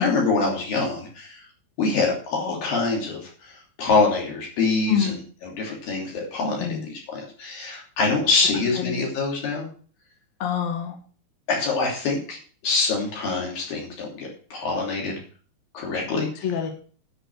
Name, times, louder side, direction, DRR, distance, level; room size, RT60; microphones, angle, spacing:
voice 1, 0.0-1.4 1.8-9.7 11.5-12.4 12.6-15.2 15.7-16.3, left 3 dB, 50° left, -1 dB, 4.4 m, -25 dB
voice 2, 10.4-10.9 16.4-16.7, left 7 dB, 70° left, 3 dB, 1.7 m, -25 dB
10.0 x 6.0 x 7.8 m, 0.43 s
omnidirectional pair, 5.4 m